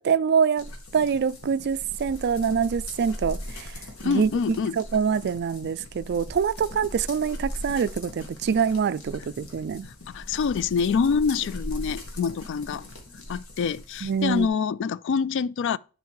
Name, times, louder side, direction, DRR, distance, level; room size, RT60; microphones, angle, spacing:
voice 1, 0.0-3.7 4.0-4.3 4.7-9.9 14.0-14.5, right 6 dB, 50° right, 0.3 m, -25 dB
sound 1, 0.6-14.5, left 1 dB, 75° left, 1.7 m, -40 dB
voice 2, 4.0-4.7 10.1-12.8 13.3-15.8, left 5 dB, 55° left, 0.3 m, -26 dB
10.5 x 4.1 x 4.8 m
head